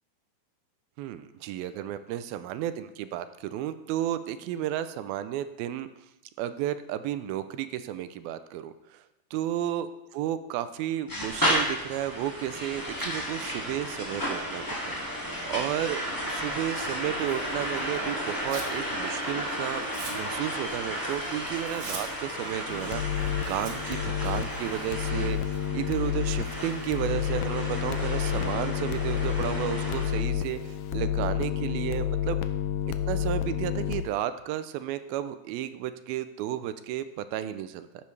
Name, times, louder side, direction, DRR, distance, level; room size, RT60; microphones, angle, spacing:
voice 1, 1.0-5.9 6.4-9.0 9.3-9.9 10.1-16.0 16.3-23.0 23.5-32.4 33.1-37.9, right 11 dB, 80° right, 12 dB, 2.3 m, -33 dB
sound 1, 11.1-30.2, equal, 10° left, 1.1 m, -33 dB
Tearing, 17.2-18.8 19.1-25.7, right 5 dB, 60° right, 2.6 m, -45 dB
sound 2, 22.7-34.0, left 9 dB, 85° left, 1.8 m, -30 dB
13.5 x 10.5 x 3.2 m, 0.90 s
omnidirectional pair, 4.4 m